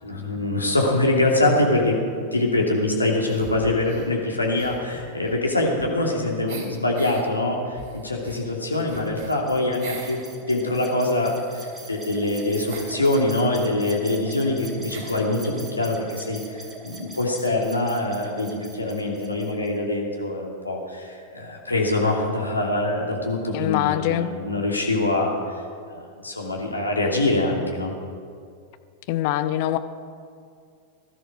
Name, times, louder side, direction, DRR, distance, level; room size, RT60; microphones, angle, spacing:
voice 1, 0.0-25.4 25.9-27.9, left 2 dB, 85° left, -1 dB, 2.7 m, -24 dB
sound 1, 3.3-4.1 4.5-6.1 6.5-7.2 7.7-10.3 10.6-12.9 13.8-13.9 14.1-14.2 14.9-15.3, right 5 dB, 45° right, 3.0 m, -43 dB
sound 2, 8.7-19.8, right 2 dB, 10° right, 2.5 m, -43 dB
voice 2, 23.5-24.3 29.1-29.8, left 13 dB, 50° left, 11 dB, 0.8 m, -23 dB
18.5 x 12.5 x 6.1 m, 2.3 s
figure-of-eight pair, 90°, 0 cm